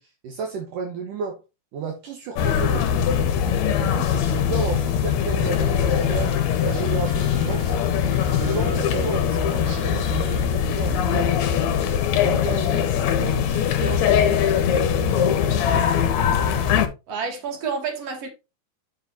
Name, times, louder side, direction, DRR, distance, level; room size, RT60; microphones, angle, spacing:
voice 1, 0.0-1.4 1.7-3.2 3.6-7.7 8.3-11.5 12.2-15.3, right 5 dB, 70° right, 2.9 m, -33 dB
sound 1, 2.4-16.9, left 8 dB, 65° left, 2.0 m, -21 dB
Bowed string instrument, 5.7-10.6, right 2 dB, 85° right, 4.0 m, -46 dB
voice 2, 17.1-18.3, right 5 dB, 45° right, 3.3 m, -29 dB
10.5 x 6.5 x 2.8 m
omnidirectional pair, 4.0 m